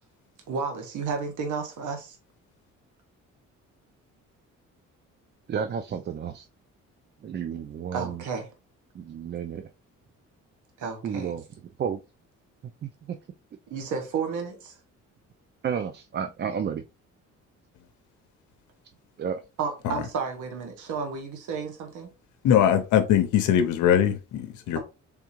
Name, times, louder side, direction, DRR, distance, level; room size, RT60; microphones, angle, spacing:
voice 1, 0.5-2.2 7.9-8.5 10.8-11.3 13.7-14.8 19.6-22.1, right 5 dB, 80° right, 1.2 m, -32 dB
voice 2, 5.5-6.5 7.2-8.2 9.0-9.6 11.0-11.4 11.8-12.0 12.8-12.9 15.6-16.8 19.2-19.4, right 7 dB, 35° right, 0.4 m, -31 dB
voice 3, 22.4-24.8, left 9 dB, 75° left, 0.6 m, -21 dB
3.6 x 3.5 x 3.0 m
cardioid pair, 90°, 30 cm